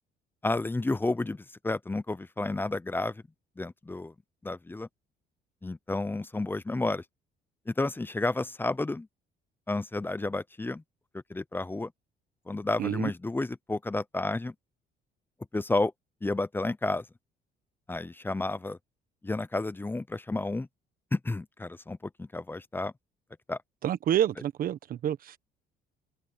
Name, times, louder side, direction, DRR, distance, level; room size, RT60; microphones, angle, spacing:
voice 1, 0.4-3.2 3.6-4.1 4.4-4.9 5.6-7.0 7.7-9.1 9.7-10.8 11.3-11.9 12.5-14.5 15.5-15.9 16.2-17.0 17.9-18.8 19.2-20.7 21.1-22.9 23.5-23.6, left 2 dB, 10° left, 0.8 m, -31 dB
voice 2, 12.8-13.1 23.8-25.3, right 10 dB, 60° right, 1.3 m, -28 dB
open air
cardioid pair, 110°, 17 cm